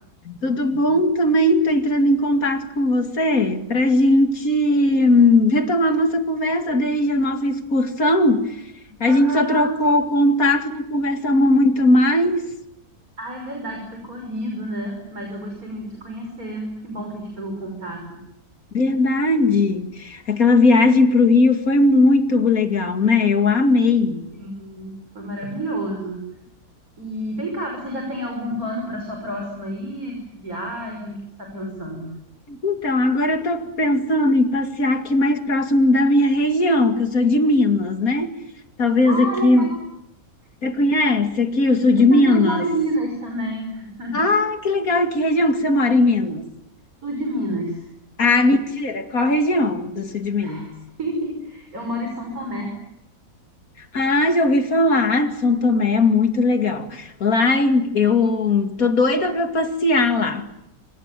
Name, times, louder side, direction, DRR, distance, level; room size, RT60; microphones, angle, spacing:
voice 1, 0.2-8.6 9.0-12.5 18.7-24.2 32.5-38.3 38.8-39.7 40.6-42.6 44.1-46.5 48.2-50.7 53.9-60.5, left 2 dB, 65° left, 2.8 m, -18 dB
voice 2, 9.0-9.7 13.2-18.2 24.3-26.2 27.0-32.1 39.0-39.8 42.0-44.2 47.0-47.9 50.4-50.7 51.0-52.7, right 1 dB, 65° right, 6.2 m, -29 dB
27.0 x 26.0 x 7.6 m
omnidirectional pair, 1.6 m